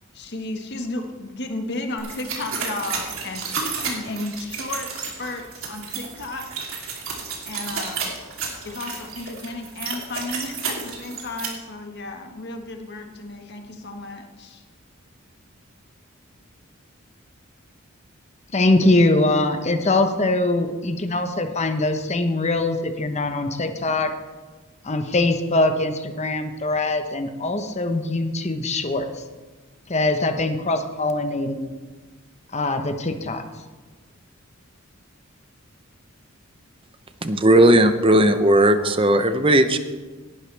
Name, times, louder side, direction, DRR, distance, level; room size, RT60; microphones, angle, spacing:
voice 1, 0.1-6.5 7.4-8.1 8.6-14.6, left 2 dB, 55° left, 4 dB, 1.5 m, -33 dB
sound 1, 2.0-11.5, right 5 dB, 75° right, 3.2 m, -31 dB
voice 2, 18.5-24.1 24.8-29.2 29.9-31.7 32.5-33.4, left 2 dB, 30° left, 7 dB, 1.0 m, -22 dB
voice 3, 37.2-39.8, right 1 dB, 25° right, 9 dB, 0.8 m, -16 dB
17.5 x 11.0 x 3.4 m, 1.3 s
head